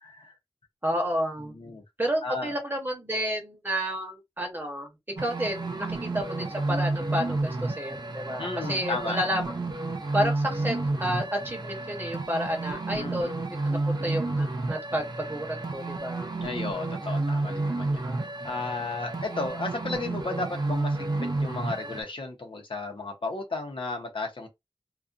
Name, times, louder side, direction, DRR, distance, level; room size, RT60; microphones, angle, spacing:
voice 1, 0.0-0.3 1.5-1.8 2.2-2.6 8.4-9.2 12.9-13.3 16.4-24.5, left 3 dB, 65° left, 0.8 m, -34 dB
voice 2, 0.8-1.5 2.0-4.9 5.2-9.4 10.1-16.3 18.0-18.2, equal, 20° right, 1.0 m, -31 dB
sound 1, 5.2-22.0, right 2 dB, 50° right, 0.6 m, -31 dB
2.4 x 2.4 x 2.5 m
wide cardioid pair, 65°, 9 cm